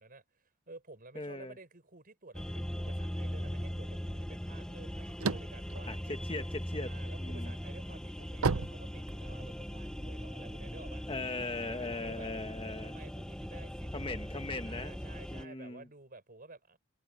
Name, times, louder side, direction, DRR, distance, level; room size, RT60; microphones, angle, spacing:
voice 1, 0.0-6.2 6.8-11.1 11.6-12.3 12.8-14.3 14.6-16.8, right 3 dB, 40° right, 4.9 m, -53 dB
voice 2, 1.1-1.5 5.8-7.5 11.1-13.0 13.9-14.9 15.3-15.9, left 3 dB, 25° left, 1.7 m, -39 dB
sound 1, 2.3-15.4, equal, 5° left, 0.7 m, -40 dB
sound 2, 5.0-6.9 7.4-9.6, right 4 dB, 90° right, 0.8 m, -33 dB
head